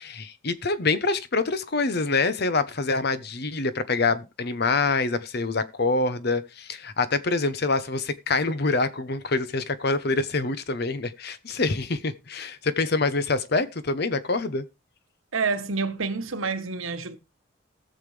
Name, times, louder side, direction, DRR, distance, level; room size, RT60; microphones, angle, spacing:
voice 1, 0.0-14.6, left 3 dB, 50° left, 0.9 m, -26 dB
voice 2, 15.3-17.2, right 4 dB, 80° right, 1.2 m, -28 dB
18.0 x 7.0 x 3.3 m
head